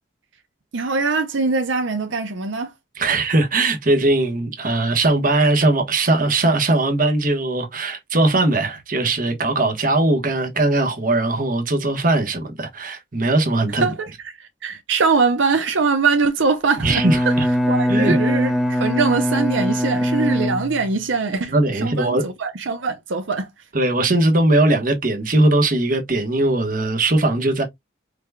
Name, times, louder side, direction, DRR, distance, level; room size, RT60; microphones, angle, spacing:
voice 1, 0.7-2.7 13.8-17.3 17.7-23.5, right 4 dB, 75° right, 0.6 m, -22 dB
voice 2, 3.0-13.9 16.8-17.5 17.9-18.1 21.5-22.2 23.7-27.6, right 2 dB, 45° right, 1.1 m, -19 dB
Bowed string instrument, 16.8-21.1, equal, ahead, 0.7 m, -21 dB
4.8 x 3.4 x 2.3 m
head